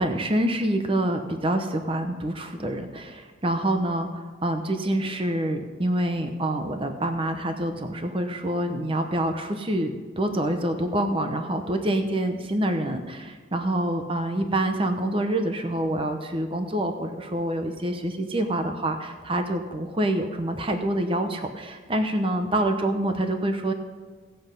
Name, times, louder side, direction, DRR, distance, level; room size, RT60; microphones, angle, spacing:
voice 1, 0.0-23.7, right 1 dB, 25° right, 6 dB, 0.8 m, -26 dB
16.5 x 7.8 x 5.3 m, 1.4 s
head